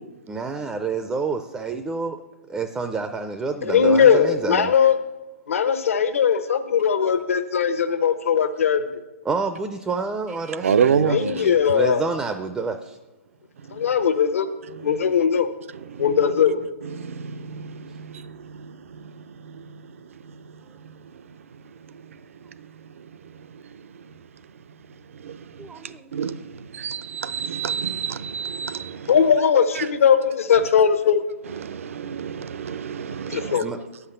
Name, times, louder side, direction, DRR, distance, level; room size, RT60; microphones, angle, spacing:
voice 1, 0.3-2.2 2.5-4.9 9.2-13.0 25.6-26.1 33.6-33.8, right 4 dB, 10° right, 0.4 m, -29 dB
voice 2, 3.7-4.9 5.5-8.8 11.1-12.0 13.7-14.5 14.8-15.5 16.0-16.6 29.1-31.2 33.3-33.6, left 7 dB, 70° left, 0.9 m, -19 dB
voice 3, 10.6-11.3 17.0-17.1 17.5-17.7 25.3-25.4 26.1-26.3 26.8-29.1 31.6-33.6, right 7 dB, 70° right, 0.5 m, -26 dB
8.0 x 5.8 x 7.8 m
hypercardioid pair, 140°, 8 cm